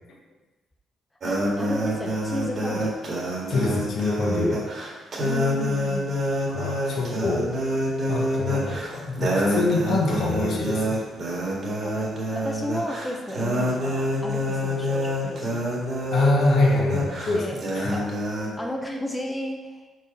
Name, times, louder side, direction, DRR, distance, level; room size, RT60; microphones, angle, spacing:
voice 1, 1.2-3.0 5.2-6.2 11.8-15.7 17.3-18.1 18.6-19.9, left 1 dB, 10° left, 0 dB, 0.7 m, -33 dB
sound 1, 1.2-18.5, equal, 50° right, 1.9 m, -27 dB
voice 2, 3.5-4.6 6.5-7.5 8.1-11.0 16.1-18.0, left 2 dB, 65° left, -1 dB, 1.3 m, -25 dB
4.8 x 4.3 x 5.4 m, 1.2 s
cardioid pair, 90°, 0 cm